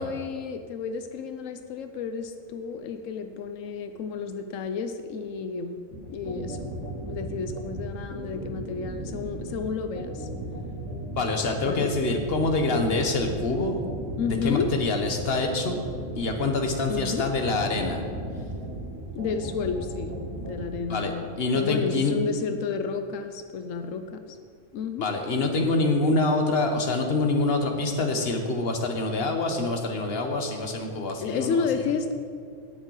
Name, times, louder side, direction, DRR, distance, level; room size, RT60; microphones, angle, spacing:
voice 1, 0.0-5.8 6.1-6.7 7.1-10.3 11.6-11.9 14.2-14.7 16.9-17.3 19.1-20.1 20.5-21.3 21.5-24.4 24.7-25.1 31.2-32.1, left 5 dB, 90° left, 7 dB, 1.1 m, -31 dB
sound 1, 5.9-20.6, right 1 dB, 60° right, 3.4 m, -36 dB
voice 2, 11.1-13.8 14.3-15.8 16.2-18.0 20.9-22.2 25.0-31.8, left 3 dB, 50° left, 4 dB, 1.4 m, -26 dB
18.0 x 6.6 x 4.8 m, 2.2 s
omnidirectional pair, 1.3 m